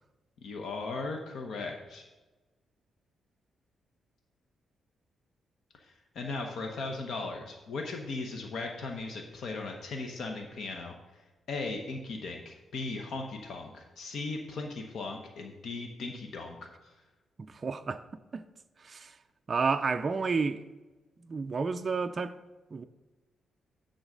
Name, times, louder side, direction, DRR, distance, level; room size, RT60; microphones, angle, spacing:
voice 1, 0.4-2.0 6.1-16.9, left 3 dB, 65° left, 0.9 m, -38 dB
voice 2, 17.4-18.0 18.3-18.4 18.8-19.2 19.5-20.6 21.2-22.4 22.7-22.8, right 4 dB, 30° right, 0.3 m, -31 dB
10.5 x 3.9 x 6.1 m
wide cardioid pair, 155°, 0 cm